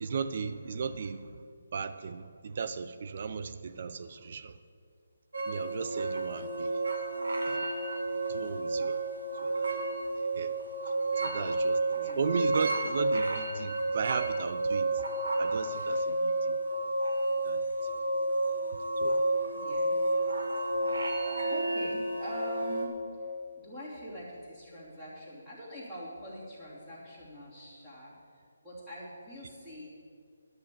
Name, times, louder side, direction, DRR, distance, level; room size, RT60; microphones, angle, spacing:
voice 1, 0.0-1.3 1.7-4.6 5.5-6.7 7.5-7.7 8.3-9.0 9.4-9.8 10.4-10.5 11.2-11.8 12.2-15.0 15.4-16.6 17.4-17.6 19.0-19.2, right 5 dB, 45° right, 11 dB, 0.6 m, -36 dB
sound 1, 5.3-22.9, right 2 dB, 80° right, 1.8 m, -31 dB
voice 2, 17.4-17.8 18.3-18.4 19.5-19.9 20.4-20.9 21.5-23.0 23.6-29.9, equal, 5° right, -13 dB, 3.1 m, -44 dB
11.0 x 6.5 x 8.5 m, 2.2 s
figure-of-eight pair, 160°, 0 cm